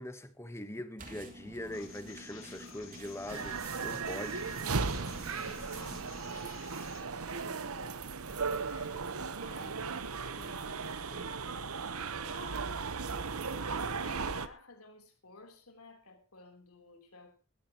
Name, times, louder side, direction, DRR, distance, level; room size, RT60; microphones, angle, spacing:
voice 1, 0.0-4.5, left 1 dB, 10° left, 1.1 m, -42 dB
sound 1, 1.0-6.7, equal, 35° right, 2.7 m, -50 dB
sound 2, 1.7-7.0, left 7 dB, 65° left, 3.1 m, -53 dB
sound 3, 3.3-14.5, right 5 dB, 80° right, 1.0 m, -36 dB
voice 2, 4.8-8.1 8.3-13.3 14.0-17.4, left 3 dB, 85° left, 3.5 m, -56 dB
19.5 x 14.0 x 3.0 m
head